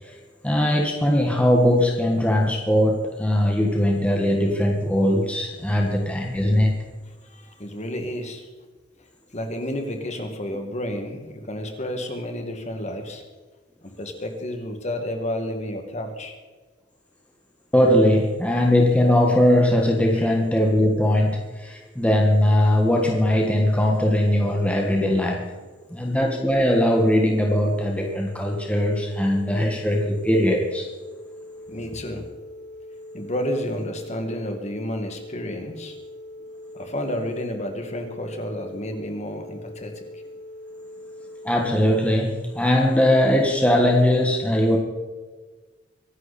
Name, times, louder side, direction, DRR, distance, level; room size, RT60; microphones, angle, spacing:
voice 1, 0.4-6.7 17.7-25.4 25.9-30.9 41.4-44.8, left 1 dB, 5° left, 0 dB, 1.6 m, -20 dB
voice 2, 7.2-8.5 9.3-13.2 14.0-16.3 20.1-20.3 31.7-32.2 33.1-36.0 36.7-40.2, left 1 dB, 35° left, 4 dB, 2.1 m, -31 dB
sound 1, 24.9-41.8, left 1 dB, 35° right, 3.2 m, -43 dB
24.0 x 11.0 x 4.3 m, 1.3 s
head